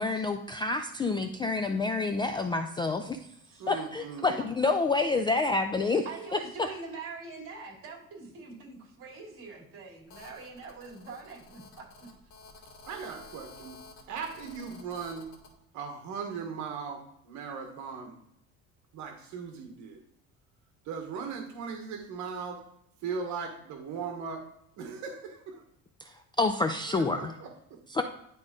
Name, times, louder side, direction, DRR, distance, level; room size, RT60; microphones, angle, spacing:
voice 1, 0.0-3.2 3.7-6.0 6.3-6.7 26.4-27.3 27.9-28.0, left 3 dB, 15° left, 6 dB, 0.3 m, -28 dB
voice 2, 3.6-4.5 12.8-13.8 14.1-15.2 15.7-17.0 17.2-18.1 18.9-20.0 20.8-22.6 23.0-24.4 24.8-25.6 26.9-27.8, right 6 dB, 60° right, 3 dB, 1.3 m, -38 dB
voice 3, 5.8-12.1, right 4 dB, 40° right, 0 dB, 2.9 m, -44 dB
Telephone, 10.1-15.5, left 3 dB, 80° left, 2.5 m, -51 dB
11.0 x 3.7 x 3.7 m, 0.78 s
cardioid pair, 140°, 32 cm